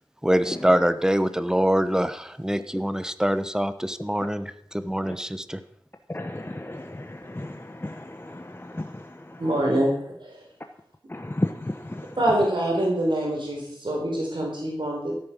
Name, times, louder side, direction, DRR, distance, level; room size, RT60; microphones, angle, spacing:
voice 1, 0.2-5.6, equal, 5° right, 12 dB, 1.0 m, -24 dB
voice 2, 6.1-9.8 11.1-12.2, left 1 dB, 25° left, 5 dB, 1.0 m, -34 dB
voice 3, 9.4-10.4 12.2-15.1, right 1 dB, 75° right, -2 dB, 4.1 m, -25 dB
14.0 x 9.0 x 6.2 m, 0.69 s
wide cardioid pair, 50°, 8 cm